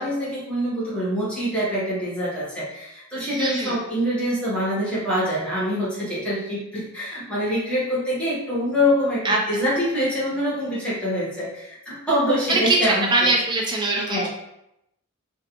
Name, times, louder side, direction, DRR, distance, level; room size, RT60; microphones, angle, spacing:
voice 1, 0.0-13.3 13.9-14.3, equal, 5° left, -9 dB, 1.2 m, -25 dB
voice 2, 3.3-3.8 9.2-9.6 12.5-14.3, right 2 dB, 20° right, -1 dB, 0.4 m, -22 dB
3.0 x 2.5 x 2.9 m, 0.84 s
head